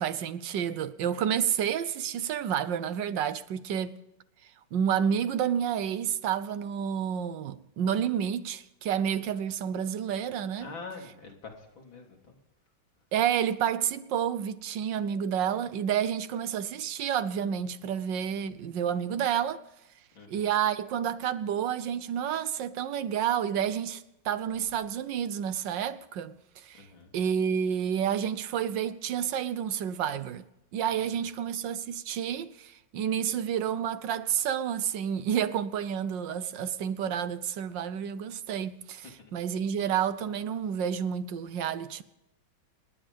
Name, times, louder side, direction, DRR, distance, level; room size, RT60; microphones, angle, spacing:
voice 1, 0.0-4.0 4.7-10.7 13.1-19.6 20.3-26.9 27.1-30.4 30.7-42.0, right 8 dB, 65° right, 1.4 m, -30 dB
voice 2, 10.6-12.3 20.1-20.5 26.8-27.1 31.0-31.1 39.2-39.3, left 4 dB, 70° left, 3.7 m, -45 dB
28.0 x 9.7 x 5.2 m
omnidirectional pair, 2.3 m